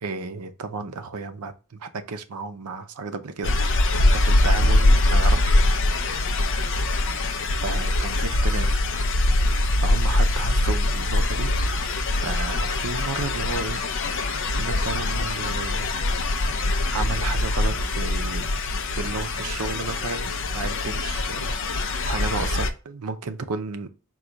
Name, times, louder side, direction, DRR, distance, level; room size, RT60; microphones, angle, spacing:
voice 1, 0.0-3.6 3.9-5.6 7.6-8.9 9.8-11.5 12.2-13.8 14.5-15.9 16.9-18.6 18.9-23.9, right 4 dB, 80° right, 0.6 m, -33 dB
sound 1, 3.4-22.7, left 2 dB, 60° left, 0.5 m, -23 dB
4.7 x 2.3 x 3.9 m
head